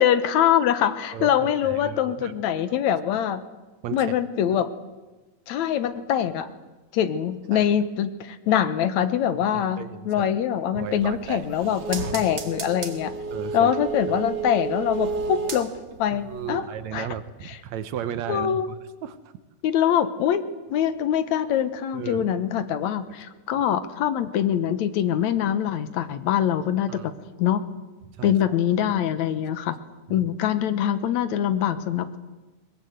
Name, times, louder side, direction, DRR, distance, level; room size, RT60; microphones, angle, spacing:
voice 1, 0.0-3.4 3.9-4.7 5.5-6.5 6.9-13.2 13.5-15.7 16.0-17.1 17.4-17.6 18.3-18.7 19.6-20.4 20.7-27.1 27.4-27.6 28.2-29.8 30.1-32.2, left 9 dB, 75° left, 12 dB, 2.2 m, -24 dB
voice 2, 1.1-2.8 3.8-4.1 7.5-7.7 9.4-10.3 10.7-11.8 13.3-13.7 16.2-18.8 19.0-19.2 21.9-22.3 26.9-27.1 28.2-28.4 30.1-30.3, right 9 dB, 70° right, 12 dB, 2.1 m, -35 dB
sound 1, 10.9-16.1 16.4-16.5, right 5 dB, 40° right, 1.9 m, -32 dB
21.5 x 21.0 x 7.9 m, 1.2 s
omnidirectional pair, 3.5 m